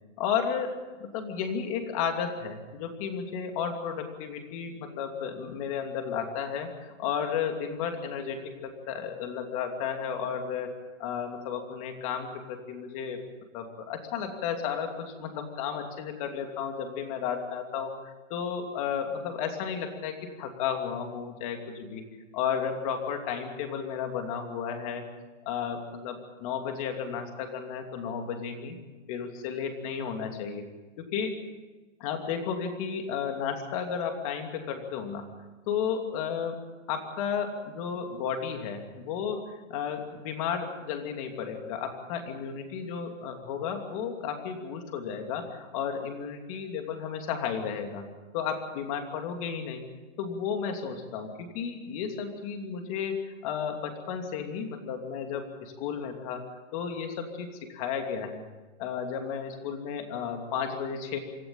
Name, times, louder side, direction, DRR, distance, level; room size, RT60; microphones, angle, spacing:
voice 1, 0.2-10.7 11.0-13.2 13.5-22.0 22.3-25.1 25.4-28.8 29.1-30.6 31.0-31.3 32.0-35.3 35.7-36.6 36.9-48.0 48.3-49.8 50.2-56.4 56.7-58.4 58.8-61.2, left 7 dB, 25° left, 5 dB, 2.8 m, -33 dB
25.0 x 14.0 x 8.9 m, 1.2 s
hypercardioid pair, 165°, 39 cm